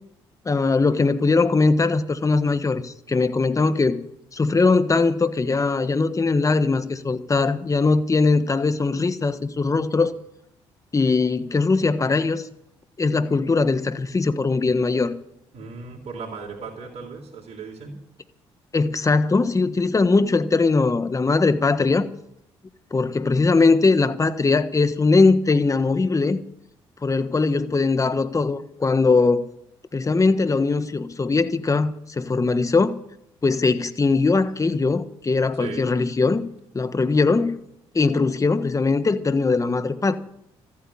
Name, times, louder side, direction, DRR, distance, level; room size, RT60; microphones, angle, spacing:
voice 1, 0.4-4.0 4.3-10.1 10.9-12.5 13.0-15.1 18.7-22.0 22.9-26.4 27.0-29.4 29.9-33.0 33.4-36.5 36.7-37.5 37.9-40.2, left 3 dB, 30° left, 1.3 m, -20 dB
voice 2, 15.5-18.0 35.6-35.8, right 5 dB, 65° right, 3.7 m, -36 dB
14.0 x 8.6 x 9.7 m
supercardioid pair, 65°, 12 cm